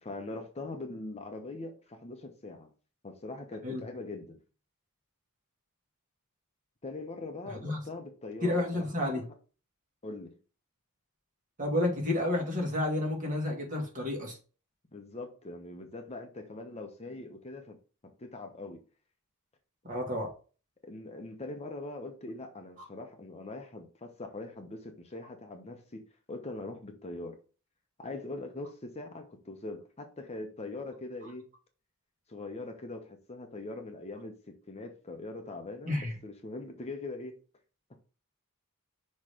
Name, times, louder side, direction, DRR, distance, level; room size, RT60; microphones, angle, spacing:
voice 1, 0.0-2.7 3.0-4.4 6.8-9.2 10.0-10.4 14.9-17.8 18.2-18.8 20.8-26.0 26.3-27.3 28.0-31.5 32.3-37.3, left 2 dB, 30° left, 0.9 m, -42 dB
voice 2, 8.4-9.2 11.6-14.4 19.8-20.3 35.9-36.1, left 1 dB, 35° right, 2.2 m, -30 dB
5.9 x 3.2 x 4.9 m
head